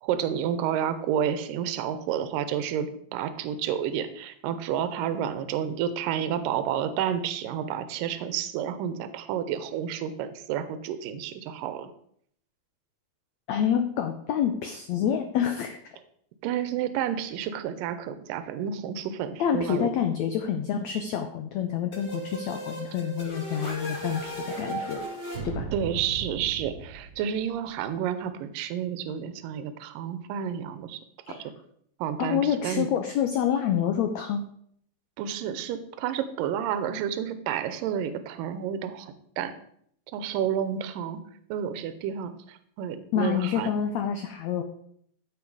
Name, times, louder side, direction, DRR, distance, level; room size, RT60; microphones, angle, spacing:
voice 1, 0.0-11.9 16.4-19.9 25.7-31.0 31.3-31.5 32.0-32.9 35.2-39.5 40.1-41.2 41.5-43.7, right 9 dB, 80° right, 11 dB, 2.4 m, -30 dB
voice 2, 13.5-15.9 19.4-25.0 25.4-25.6 31.3-31.5 32.2-34.5 43.1-44.6, left 9 dB, 75° left, 6 dB, 1.6 m, -27 dB
sound 1, 21.9-27.6, right 2 dB, 30° left, 4.1 m, -36 dB
14.0 x 5.7 x 4.8 m, 0.66 s
omnidirectional pair, 4.1 m